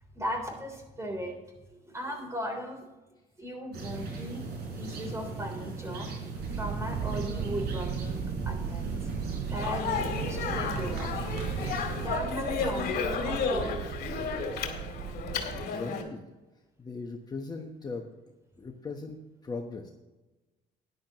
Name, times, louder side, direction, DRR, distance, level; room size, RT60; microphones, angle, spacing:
voice 1, 0.1-1.4 1.7-2.8 3.4-4.4 4.7-6.1 6.6-9.1 9.5-11.2 12.0-14.0, equal, 15° right, 3 dB, 3.5 m, -37 dB
sound 1, 3.7-12.1, right 3 dB, 75° right, 4.4 m, -37 dB
sound 2, 6.4-15.7, right 9 dB, 40° right, 0.4 m, -37 dB
Speech, 9.5-16.0, left 5 dB, 65° left, 2.2 m, -33 dB
voice 2, 15.5-16.2 16.8-18.1 18.6-19.2 19.4-19.9, left 4 dB, 25° left, 2 dB, 1.1 m, -38 dB
13.5 x 10.5 x 3.0 m, 1.1 s
cardioid pair, 110°, 17 cm